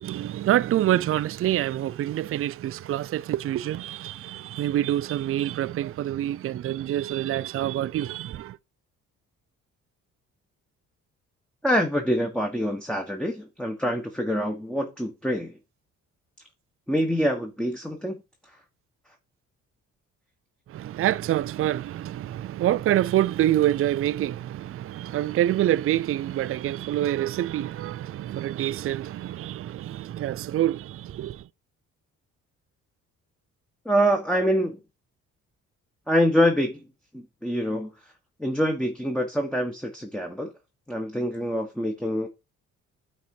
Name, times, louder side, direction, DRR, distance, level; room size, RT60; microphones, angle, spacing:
voice 1, 0.0-8.6 20.7-31.5, right 13 dB, 50° right, 0.4 m, -26 dB
voice 2, 11.6-15.6 16.9-18.2 33.8-34.8 36.1-36.8 37.1-37.9 38.4-40.5 40.9-42.3, equal, 5° left, 1.4 m, -25 dB
9.3 x 4.2 x 4.7 m
cardioid pair, 90°, 30 cm